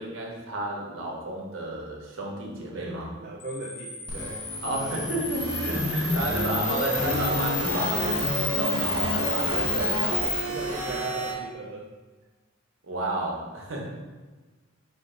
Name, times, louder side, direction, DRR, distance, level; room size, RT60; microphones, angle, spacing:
voice 1, 0.0-3.1 4.6-10.3 12.8-13.8, right 2 dB, 65° right, -1 dB, 0.9 m, -32 dB
voice 2, 2.7-4.5 9.5-10.0 10.5-11.9, right 3 dB, 45° right, -2 dB, 0.4 m, -37 dB
Camera, 3.4-10.4, left 4 dB, 40° left, 0.8 m, -31 dB
sound 1, 4.1-11.3, equal, 20° right, 1.1 m, -30 dB
5.0 x 2.5 x 3.7 m, 1.3 s
head